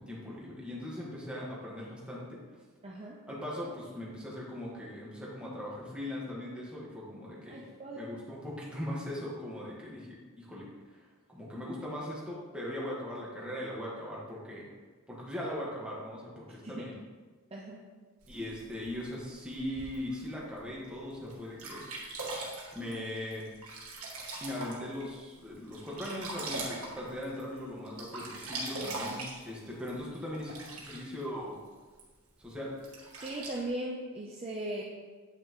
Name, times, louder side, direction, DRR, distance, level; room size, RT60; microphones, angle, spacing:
voice 1, 0.0-2.4 3.3-7.7 7.9-14.7 15.1-17.0 18.3-22.0 22.7-23.5 24.4-31.5 32.4-32.7, left 1 dB, 5° right, -5 dB, 1.6 m, -39 dB
voice 2, 2.8-3.2 7.5-8.1 16.6-16.9 17.5-17.8 33.2-34.8, right 1 dB, 25° right, -3 dB, 0.6 m, -38 dB
Sink (filling or washing), 18.2-20.2 20.8-20.9 21.3-21.4 21.6-25.1 25.5-27.6 27.9-31.2 32.0-32.1 32.8-33.6, right 2 dB, 85° right, 1.6 m, -41 dB
8.6 x 6.0 x 3.1 m, 1.4 s
head